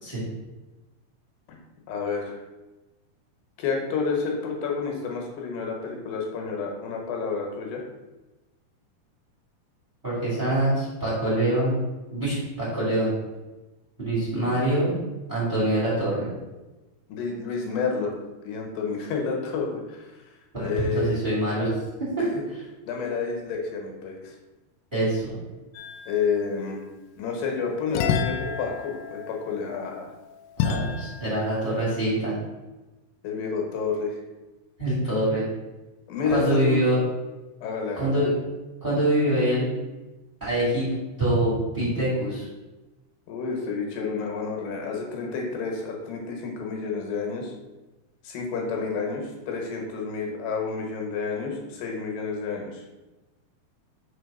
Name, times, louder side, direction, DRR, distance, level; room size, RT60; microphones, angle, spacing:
voice 1, 1.9-2.4 3.6-7.8 17.1-18.2 18.4-20.3 20.6-21.2 22.4-22.5 22.9-24.4 26.1-26.9 27.2-30.1 33.2-34.2 36.1-36.9 37.6-38.2 43.3-47.5 48.2-52.8, left 5 dB, 75° left, 1 dB, 3.0 m, -30 dB
voice 2, 10.0-11.8 12.1-13.1 14.0-14.9 15.3-16.3 20.5-20.7 20.9-21.7 22.2-22.6 24.9-25.4 30.6-32.3 34.8-35.4 36.3-37.0 37.9-38.3 38.8-39.6 40.4-40.9 41.2-42.5, right 1 dB, 25° right, -7 dB, 1.0 m, -24 dB
sound 1, 25.7-26.5 27.9-31.6, left 7 dB, 90° left, 2.2 m, -30 dB
6.4 x 3.3 x 5.3 m, 1.1 s
omnidirectional pair, 5.0 m